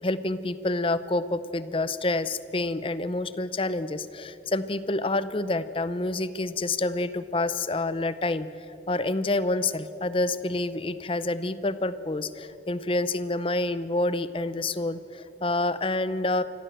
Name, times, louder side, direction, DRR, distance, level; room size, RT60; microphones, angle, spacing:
voice 1, 0.0-8.5 8.9-16.4, left 2 dB, 30° left, 14 dB, 0.7 m, -28 dB
25.5 x 14.5 x 7.8 m, 3.0 s
head